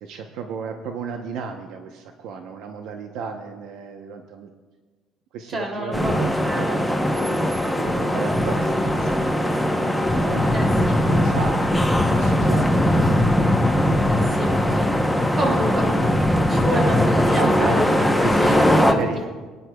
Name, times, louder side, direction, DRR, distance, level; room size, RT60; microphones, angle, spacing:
voice 1, 0.0-4.5 5.3-7.3 7.8-9.5 10.1-13.8 14.3-14.7 15.7-16.2 17.3-17.8 18.2-18.4 18.8-19.5, right 6 dB, 75° right, 5 dB, 0.8 m, -34 dB
voice 2, 5.5-6.7 10.5-11.0 14.1-14.9 15.3-16.1 16.5-19.0, equal, 30° right, 0 dB, 2.8 m, -28 dB
sound 1, 5.9-18.9, left 1 dB, ahead, 0.8 m, -20 dB
23.0 x 9.9 x 2.3 m, 1.4 s
cardioid pair, 130°, 0 cm